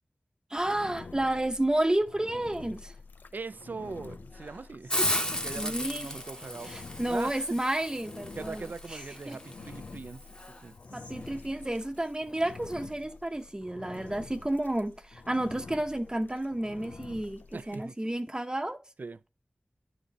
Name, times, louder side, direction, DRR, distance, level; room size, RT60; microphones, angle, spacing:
voice 1, 0.5-2.9 5.5-6.1 6.6-9.4 10.9-18.8, right 1 dB, 25° right, 0.7 m, -31 dB
Engine, 0.6-17.9, left 4 dB, 85° left, 0.4 m, -48 dB
sound 1, 2.4-3.4 3.8-12.6 12.9-13.1 13.3-13.5 14.0-16.5 17.0-18.4, left 2 dB, 60° left, 1.7 m, -57 dB
voice 2, 3.3-7.6 8.4-10.3 10.6-11.3 17.5-18.1 19.0-19.2, right 4 dB, 75° right, 0.4 m, -41 dB
Hiss, 4.9-10.5, left 1 dB, 30° left, 1.0 m, -35 dB
10.0 x 4.0 x 5.0 m
wide cardioid pair, 55°, 3 cm